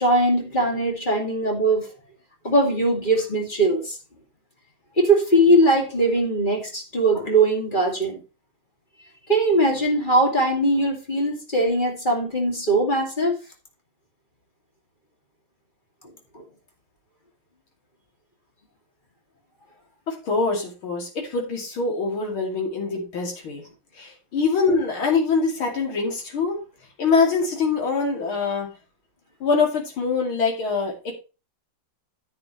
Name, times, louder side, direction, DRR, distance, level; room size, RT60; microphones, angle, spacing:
voice 1, 0.0-1.9 2.4-4.0 5.0-8.2 9.3-13.4 16.3-16.4, right 1 dB, 25° left, 2.4 m, -20 dB
voice 2, 20.1-23.6 23.9-26.6 27.0-28.7 29.4-31.2, left 4 dB, 80° left, 3.4 m, -24 dB
10.0 x 9.1 x 3.1 m
omnidirectional pair, 2.3 m